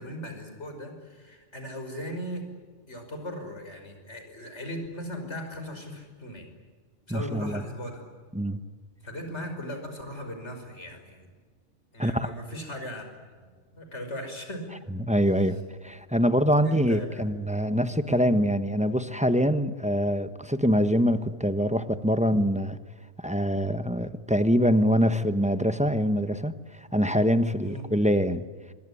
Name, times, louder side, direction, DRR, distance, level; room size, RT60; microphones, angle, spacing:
voice 1, 0.0-2.4 2.9-6.5 7.1-8.0 9.0-11.3 11.9-13.1 13.4-14.6 16.6-17.3 18.0-18.2 27.6-27.8, equal, 75° left, 5 dB, 5.8 m, -38 dB
voice 2, 7.1-7.6 8.3-8.6 12.0-12.3 15.1-22.8 23.2-26.5 26.9-28.5, equal, 5° right, 10 dB, 1.0 m, -24 dB
25.0 x 23.0 x 9.9 m, 1.5 s
omnidirectional pair, 1.2 m